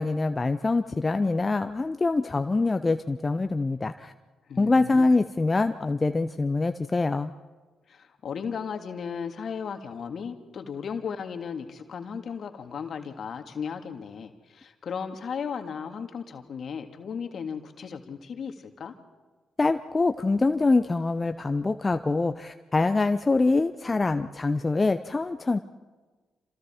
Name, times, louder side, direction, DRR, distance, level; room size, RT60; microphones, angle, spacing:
voice 1, 0.0-4.1 4.6-7.3 19.6-25.6, left 3 dB, 30° left, 8 dB, 0.8 m, -24 dB
voice 2, 4.5-5.1 7.9-18.9, left 6 dB, 60° left, 6 dB, 2.0 m, -35 dB
28.0 x 27.0 x 4.4 m, 1.4 s
hypercardioid pair, 40°, 0 cm